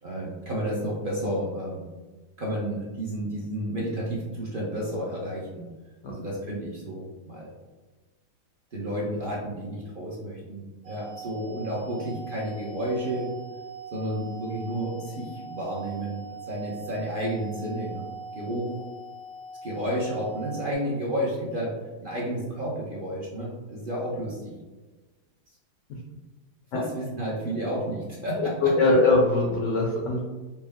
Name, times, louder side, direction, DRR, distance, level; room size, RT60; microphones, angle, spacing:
voice 1, 0.0-1.8 2.4-5.7 6.1-7.5 8.7-13.3 13.9-18.1 18.3-18.9 19.6-21.7 22.0-24.5 26.7-29.0, right 1 dB, 50° right, -5 dB, 0.6 m, -31 dB
sound 1, 10.8-20.7, right 4 dB, 80° right, 1.3 m, -41 dB
voice 2, 28.4-30.2, left 2 dB, 70° left, -1 dB, 0.7 m, -22 dB
4.3 x 2.1 x 3.5 m, 1.2 s
omnidirectional pair, 1.8 m